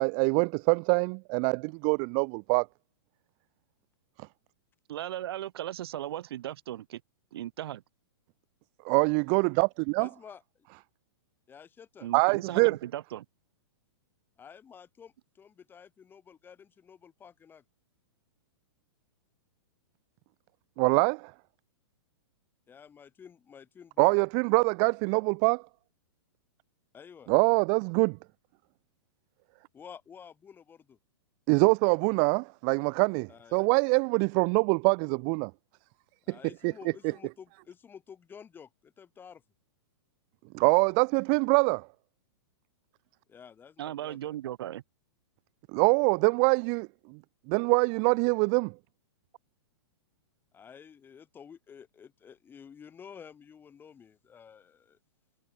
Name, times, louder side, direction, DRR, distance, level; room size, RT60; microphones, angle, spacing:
voice 1, 0.0-2.7 8.8-10.1 12.1-12.8 20.8-21.3 24.0-25.6 27.3-28.2 31.5-35.5 36.3-36.4 36.6-36.7 40.5-41.9 45.7-47.2 47.5-48.7, right 40 dB or more, 30° right, 0.7 m, -24 dB
voice 2, 4.9-7.0 7.3-7.8 12.0-13.2 43.8-44.8, right 13 dB, 60° right, 4.4 m, -37 dB
voice 3, 10.0-10.7 11.5-12.1 14.4-17.6 22.7-24.1 26.9-27.3 29.7-31.0 33.3-33.6 36.3-39.4 43.3-44.3 50.5-55.0, left 7 dB, 15° left, 4.1 m, -51 dB
hypercardioid pair, 150°, 15 cm